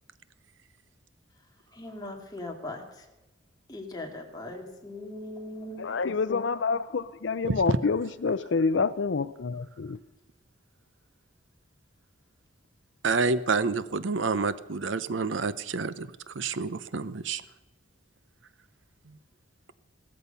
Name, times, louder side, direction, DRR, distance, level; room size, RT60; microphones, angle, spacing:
voice 1, 1.7-2.8 3.7-5.8, left 1 dB, 20° left, 1 dB, 2.3 m, -39 dB
voice 2, 5.8-10.0, left 4 dB, 65° left, 15 dB, 0.5 m, -27 dB
voice 3, 13.0-17.4, right 4 dB, 75° right, 15 dB, 0.7 m, -28 dB
15.5 x 14.0 x 5.6 m, 1.0 s
head